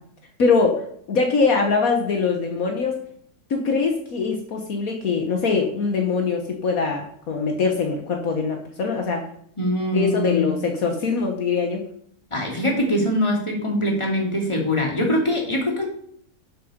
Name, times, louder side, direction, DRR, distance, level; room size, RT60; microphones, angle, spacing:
voice 1, 0.4-3.0 3.5-9.3 9.9-11.8, left 4 dB, 65° left, 3 dB, 1.7 m, -22 dB
voice 2, 9.6-10.6 12.3-15.9, left 1 dB, 20° left, -1 dB, 3.0 m, -23 dB
11.5 x 7.7 x 5.2 m, 0.65 s
omnidirectional pair, 1.6 m